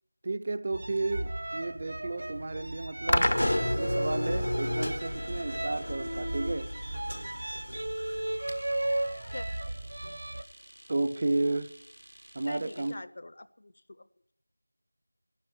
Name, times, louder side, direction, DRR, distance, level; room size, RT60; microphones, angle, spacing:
voice 1, 0.2-3.4 3.8-6.7 10.9-11.7 12.3-13.0, right 2 dB, 25° right, 0.5 m, -32 dB
sound 1, 0.7-10.4, right 1 dB, 45° right, 0.8 m, -35 dB
sound 2, 3.1-10.2, left 1 dB, 75° left, 0.8 m, -32 dB
Domestic sounds home sounds, 5.0-13.0, right 1 dB, 80° right, 1.3 m, -53 dB
voice 2, 12.5-14.1, left 2 dB, 35° left, 0.5 m, -44 dB
13.0 x 11.0 x 9.9 m
figure-of-eight pair, 180°, 0 cm